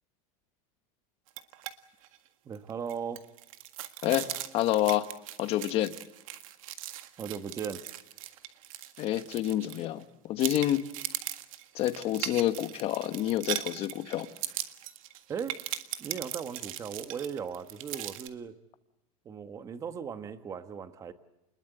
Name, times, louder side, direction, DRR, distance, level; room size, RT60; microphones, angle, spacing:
sound 1, 1.3-1.7 2.0-2.2 2.5-10.0 10.4-18.3, right 13 dB, 75° right, 1.8 m, -39 dB
voice 1, 2.4-3.2 7.2-7.8 15.3-15.6 16.0-18.6 19.2-21.1, right 7 dB, 20° right, 10 dB, 1.2 m, -37 dB
voice 2, 4.5-5.1 5.4-5.9 9.0-10.8 11.7-14.3, left 13 dB, 35° left, 11 dB, 1.2 m, -28 dB
29.0 x 21.5 x 7.9 m, 0.90 s
supercardioid pair, 175°, 18 cm